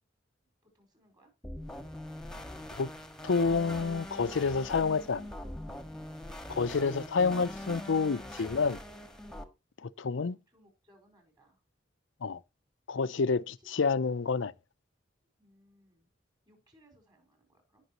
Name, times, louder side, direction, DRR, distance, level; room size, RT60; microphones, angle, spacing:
voice 1, 0.6-1.3 10.3-11.6 13.4-13.8 15.4-16.1 16.5-17.8, equal, 20° right, 4.8 m, -65 dB
sound 1, 1.4-9.4, left 1 dB, 5° left, 1.5 m, -43 dB
voice 2, 3.2-5.3 6.5-8.8 9.8-10.4 12.2-12.4 12.9-14.5, left 4 dB, 70° left, 0.5 m, -29 dB
17.5 x 6.2 x 2.9 m
head